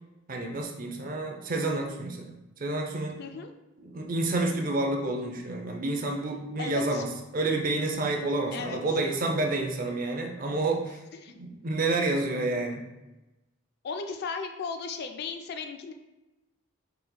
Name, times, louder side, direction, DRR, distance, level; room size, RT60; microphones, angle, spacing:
voice 1, 0.3-2.3 2.6-3.2 3.8-11.0 11.4-12.8, right 2 dB, 40° right, 2 dB, 0.5 m, -29 dB
voice 2, 3.2-3.5 6.6-7.0 8.5-8.8 11.2-11.3 13.8-15.9, left 5 dB, 50° left, 6 dB, 0.3 m, -36 dB
4.2 x 3.9 x 2.2 m, 1.0 s
head